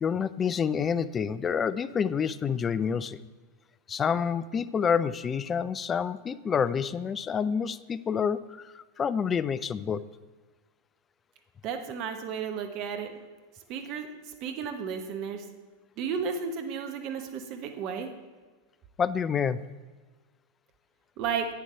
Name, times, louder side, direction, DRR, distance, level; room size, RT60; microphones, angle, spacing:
voice 1, 0.0-3.2 3.9-10.0 19.0-19.6, left 7 dB, 20° left, 16 dB, 0.3 m, -28 dB
voice 2, 11.6-13.1 13.7-15.4 16.0-18.1 21.2-21.5, right 6 dB, 40° right, 6 dB, 1.0 m, -33 dB
9.2 x 6.8 x 4.5 m, 1.4 s
figure-of-eight pair, 90°, 0 cm